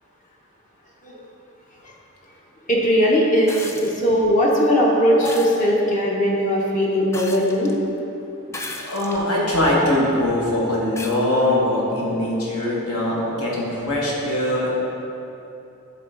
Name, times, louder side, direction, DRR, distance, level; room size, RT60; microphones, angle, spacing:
voice 1, 2.7-7.7, equal, 35° left, -3 dB, 0.9 m, -19 dB
sound 1, 3.5-4.0 5.2-5.6 7.1-7.7 8.5-9.2 9.9-10.0 11.0-11.2 12.6-12.7, left 2 dB, 10° left, 0.3 m, -34 dB
voice 2, 8.7-14.7, left 1 dB, 75° left, -5 dB, 1.6 m, -22 dB
11.0 x 3.8 x 3.8 m, 2.9 s
head